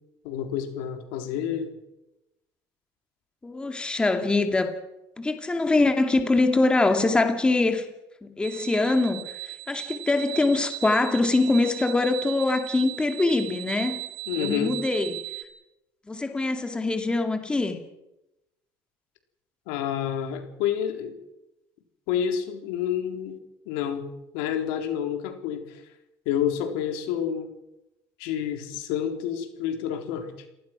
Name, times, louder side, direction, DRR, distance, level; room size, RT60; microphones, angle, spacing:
voice 1, 0.2-1.7 14.3-14.8 19.7-21.1 22.1-23.4 23.7-24.1 24.3-25.8 26.3-27.5 28.2-30.3, left 9 dB, 90° left, 6 dB, 4.0 m, -29 dB
voice 2, 3.4-4.7 5.2-7.9 8.2-14.0 14.4-15.2 16.1-17.8, left 2 dB, 10° left, 6 dB, 2.4 m, -23 dB
sound 1, 8.4-15.4, right 19 dB, 90° right, 3.2 m, -37 dB
29.0 x 19.0 x 6.2 m, 0.92 s
cardioid pair, 140°, 8 cm